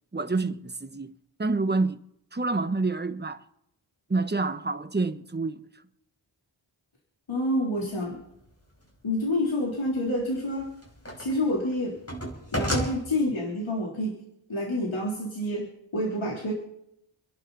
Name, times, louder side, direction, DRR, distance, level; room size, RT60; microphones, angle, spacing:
voice 1, 0.1-2.0 2.3-3.4 4.1-5.6, right 3 dB, 20° right, 1.1 m, -28 dB
voice 2, 7.3-8.2 9.0-10.7 11.2-12.0 12.5-14.1 14.5-16.5, left 1 dB, 70° left, 3.7 m, -28 dB
sound 1, 8.3-8.4 10.1-11.4 11.7-12.9, equal, 30° left, 5.4 m, -31 dB
28.0 x 11.0 x 4.1 m
cardioid pair, 45°, 48 cm